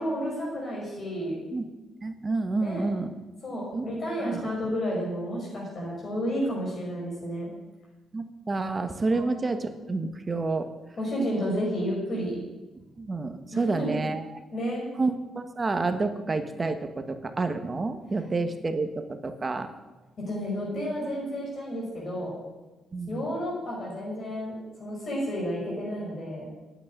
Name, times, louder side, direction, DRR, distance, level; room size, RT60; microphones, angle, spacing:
voice 1, 0.0-1.4 2.6-2.8 3.4-7.5 9.1-9.3 11.0-12.4 13.5-14.0 14.5-14.9 20.3-22.3 23.1-26.5, equal, 45° left, -3 dB, 5.3 m, -31 dB
voice 2, 2.0-3.1 3.7-3.8 4.2-4.4 8.1-10.7 13.0-14.4 15.0-19.7 22.9-23.3, right 3 dB, 30° right, 8 dB, 1.2 m, -29 dB
9.3 x 8.5 x 9.8 m, 1.1 s
cardioid pair, 90°, 0 cm